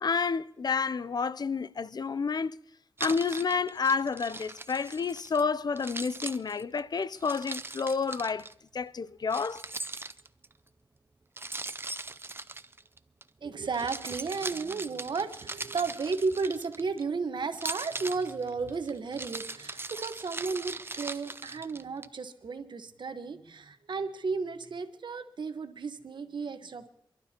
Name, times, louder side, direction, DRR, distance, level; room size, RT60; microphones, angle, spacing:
voice 1, 0.0-2.6 3.0-8.5 8.7-9.6, left 5 dB, 55° left, 0.5 m, -30 dB
Keys jangling, 3.0-5.4 5.8-8.5 9.3-10.5 11.4-13.2 13.7-17.0 17.5-22.1, right 3 dB, 30° right, 0.5 m, -40 dB
voice 2, 13.4-26.9, right 4 dB, 65° right, 1.2 m, -34 dB
28.0 x 12.0 x 2.9 m
cardioid pair, 55°, 8 cm